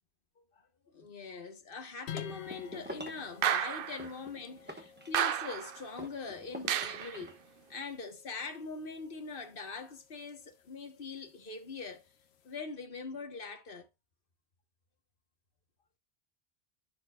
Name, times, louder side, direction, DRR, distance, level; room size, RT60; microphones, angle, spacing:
voice 1, 0.5-7.4 7.7-12.1 12.4-13.9, left 4 dB, 55° left, 1.3 m, -42 dB
sound 1, 2.1-12.6, left 9 dB, 70° left, 0.9 m, -52 dB
sound 2, 2.3-3.3 4.0-5.5 6.0-7.4, equal, 10° right, 1.0 m, -46 dB
sound 3, 3.4-4.1 5.1-5.8 6.7-7.2, right 10 dB, 60° right, 0.7 m, -31 dB
11.0 x 4.4 x 2.3 m
omnidirectional pair, 1.1 m